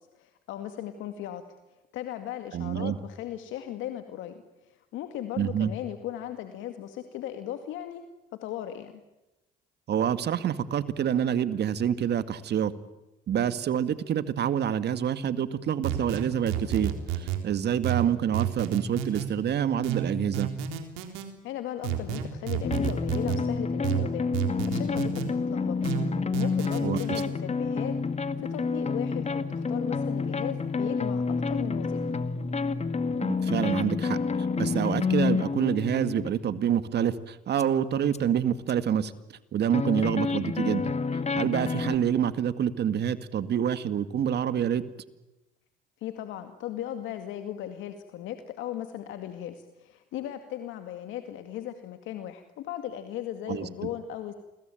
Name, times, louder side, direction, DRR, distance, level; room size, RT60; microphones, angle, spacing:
voice 1, 0.1-1.4 1.9-8.0 8.4-9.0 21.4-25.9 26.4-27.9 28.4-32.0 46.0-54.3, left 11 dB, 75° left, 7 dB, 2.1 m, -37 dB
voice 2, 2.5-3.0 5.4-5.7 9.9-12.7 13.3-20.5 26.8-27.2 33.2-34.2 34.6-39.1 39.5-40.9 41.4-44.8 53.5-53.7, right 9 dB, 55° right, 12 dB, 2.1 m, -27 dB
sound 1, 15.8-17.4 17.8-19.3 19.8-21.3 21.8-23.4 23.8-25.3 25.8-27.3, right 11 dB, 85° right, 3.8 m, -30 dB
sound 2, 22.6-36.3 37.6-37.7 38.1-38.2 38.7-38.8 39.7-42.0, left 4 dB, 35° left, 2.1 m, -29 dB
29.0 x 22.0 x 9.2 m, 1.0 s
supercardioid pair, 75°, 20 cm